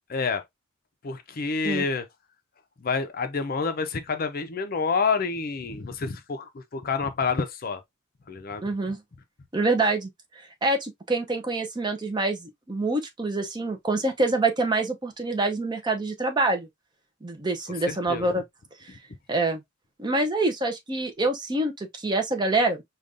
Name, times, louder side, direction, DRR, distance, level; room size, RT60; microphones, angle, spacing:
voice 1, 0.1-0.4 1.0-2.1 2.8-7.8 8.3-8.7 17.9-18.4, left 4 dB, 40° left, 0.5 m, -28 dB
voice 2, 8.6-9.0 9.5-10.1 10.6-16.7 17.2-18.4 19.3-19.6 20.0-22.8, right 2 dB, 20° right, 0.5 m, -26 dB
5.0 x 2.3 x 2.5 m
head